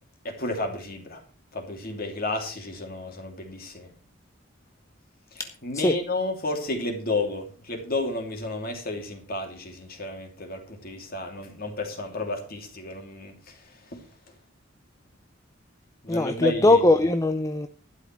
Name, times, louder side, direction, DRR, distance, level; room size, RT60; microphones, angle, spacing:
voice 1, 0.2-1.2 1.5-3.9 5.3-13.6 13.9-14.0 16.0-16.8, left 2 dB, 45° left, 3 dB, 2.9 m, -32 dB
voice 2, 16.1-17.7, left 2 dB, 15° left, 8 dB, 0.5 m, -20 dB
12.0 x 10.0 x 4.6 m, 0.38 s
head